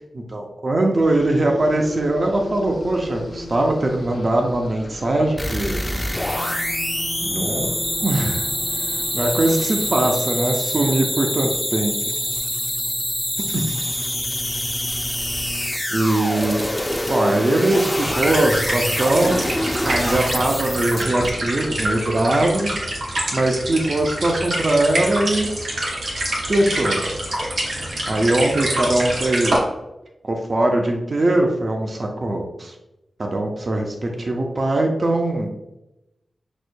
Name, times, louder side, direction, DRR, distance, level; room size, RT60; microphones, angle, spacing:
voice 1, 0.1-5.8 7.2-7.7 8.0-8.5 8.9-11.9 13.5-13.6 15.9-16.6 17.1-19.4 19.8-22.7 23.3-25.5 26.5-27.0 28.1-29.6 30.2-32.7 33.2-35.5, right 1 dB, 45° right, 2 dB, 0.5 m, -21 dB
sound 1, 1.0-10.2, left 2 dB, 55° left, 0.6 m, -36 dB
sound 2, 5.4-21.3, left 1 dB, 10° left, 0.4 m, -25 dB
sound 3, 18.0-29.6, right 1 dB, 85° right, 1.1 m, -26 dB
6.0 x 2.1 x 2.6 m, 0.92 s
wide cardioid pair, 75°, 0 cm